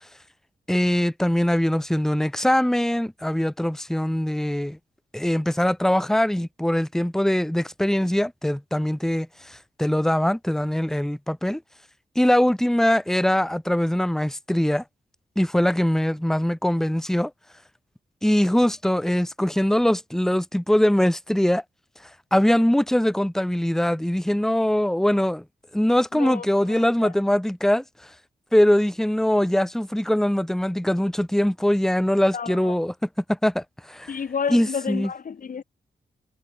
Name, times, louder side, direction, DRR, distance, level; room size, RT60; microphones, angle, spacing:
voice 1, 0.7-4.8 5.1-11.6 12.1-14.8 15.4-17.3 18.2-21.6 22.3-25.4 25.7-27.8 28.5-32.9 33.3-34.1 34.5-35.1, left 1 dB, 5° left, 1.2 m, -22 dB
voice 2, 26.1-27.1 32.3-32.8 34.1-35.6, left 6 dB, 55° left, 1.3 m, -31 dB
wide cardioid pair, 100°, 17 cm